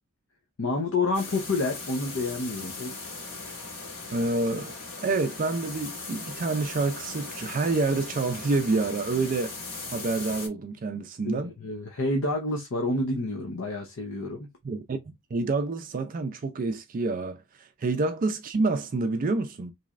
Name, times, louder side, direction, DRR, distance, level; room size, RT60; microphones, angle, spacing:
voice 1, 0.6-3.1 11.2-14.5, left 2 dB, 60° left, 0.7 m, -29 dB
sound 1, 1.1-10.5, left 3 dB, 80° left, 2.5 m, -39 dB
voice 2, 4.1-9.6 9.9-11.5 14.6-15.0 15.3-19.7, right 3 dB, 40° right, 0.4 m, -28 dB
4.0 x 3.1 x 2.4 m
head